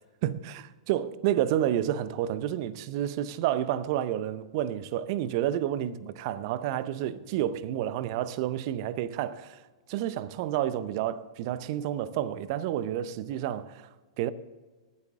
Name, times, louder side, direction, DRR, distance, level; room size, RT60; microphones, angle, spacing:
voice 1, 0.2-14.3, right 11 dB, 50° right, 0.7 m, -30 dB
18.5 x 8.5 x 3.6 m
hypercardioid pair, 105°, 3 cm